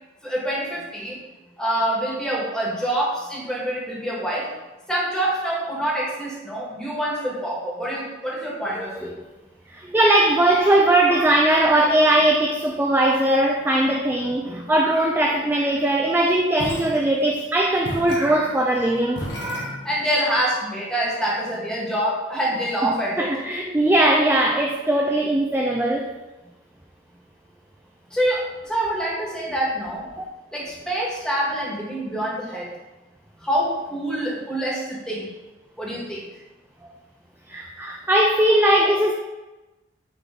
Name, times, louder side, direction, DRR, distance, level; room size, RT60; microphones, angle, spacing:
voice 1, 0.2-1.2 1.6-4.5 4.9-9.1 19.8-23.3 28.1-30.1 30.5-32.7 33.4-35.3 35.8-36.3, right 1 dB, 5° left, -5 dB, 1.7 m, -26 dB
voice 2, 8.8-9.1 9.7-19.8 23.2-26.1 30.2-30.3 37.5-39.1, right 1 dB, 10° right, 0 dB, 0.4 m, -20 dB
sound 1, 16.6-17.5 17.8-20.2, left 1 dB, 70° left, 1.5 m, -34 dB
8.6 x 3.4 x 3.8 m, 1.1 s
head